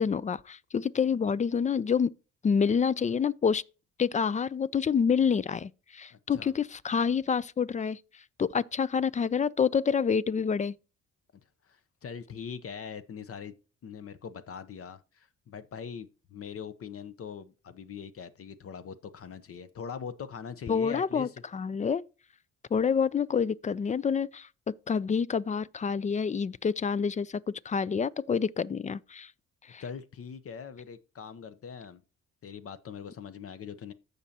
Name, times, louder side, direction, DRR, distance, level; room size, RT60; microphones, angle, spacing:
voice 1, 0.0-2.1 2.4-3.6 4.0-8.0 8.4-10.8 20.7-22.0 22.7-24.5 24.9-27.4 27.7-29.3 29.7-29.8, left 6 dB, 25° left, 0.3 m, -27 dB
voice 2, 6.1-6.5 11.6-13.5 13.8-21.4 29.8-32.0 32.4-33.9, left 7 dB, 50° left, 0.8 m, -42 dB
14.5 x 5.3 x 2.8 m
cardioid pair, 90°, 30 cm